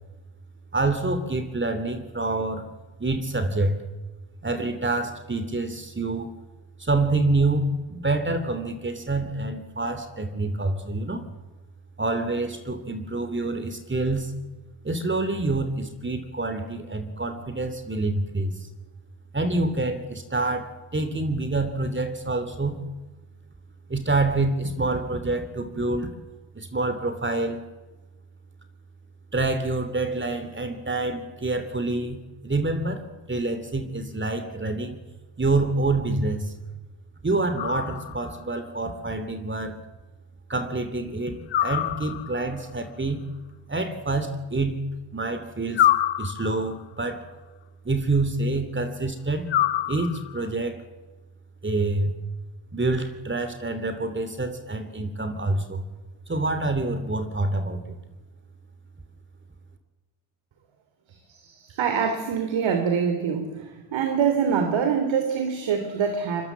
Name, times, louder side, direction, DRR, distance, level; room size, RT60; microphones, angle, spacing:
voice 1, 0.7-2.7 3.0-3.8 4.4-6.3 6.8-11.2 12.0-14.3 14.8-18.5 19.3-22.8 23.9-26.1 26.5-27.6 29.3-35.0 35.4-36.5 37.2-39.8 40.5-43.2 43.7-44.8 45.1-45.9 46.2-47.3 47.8-49.5 49.9-50.8 51.6-52.1 52.7-55.8 56.3-58.0, right 2 dB, 25° right, 9 dB, 3.2 m, -27 dB
sound 1, 37.6-38.4 41.5-42.5 45.7-46.8 49.5-50.5, left 12 dB, 65° left, 1.3 m, -25 dB
voice 2, 61.1-66.5, right 6 dB, 70° right, 7 dB, 3.3 m, -25 dB
25.0 x 22.0 x 7.5 m, 1.2 s
supercardioid pair, 65°, 48 cm